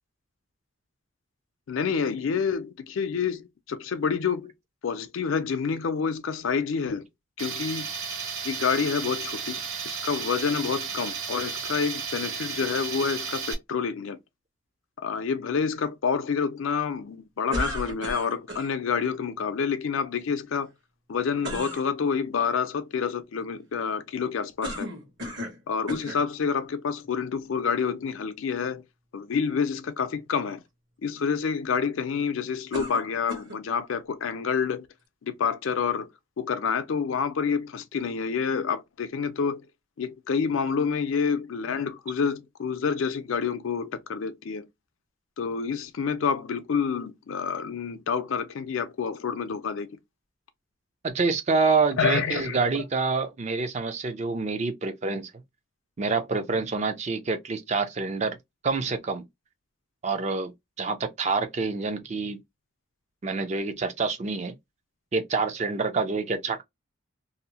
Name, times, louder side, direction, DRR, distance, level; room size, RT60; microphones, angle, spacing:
voice 1, 1.7-4.5 4.8-7.1 7.4-7.9 8.4-14.2 15.0-20.7 21.1-24.9 25.7-28.8 29.1-30.6 31.0-34.9 35.2-36.1 36.4-39.7 40.0-44.6 45.4-50.0 52.0-52.6, left 6 dB, 75° left, 0.4 m, -28 dB
Tools, 7.4-13.5, right 6 dB, 80° right, 0.7 m, -33 dB
sound 1, 17.5-18.7 21.4-21.8 24.6-25.6 25.9-26.2 27.0-27.1 32.7-33.6, left 1 dB, 60° right, 1.1 m, -34 dB
voice 2, 51.0-55.3 56.0-58.4 58.6-59.2 60.0-60.5 60.8-62.4 63.2-64.5 65.1-66.6, right 4 dB, 35° right, 0.4 m, -27 dB
2.7 x 2.0 x 2.7 m
head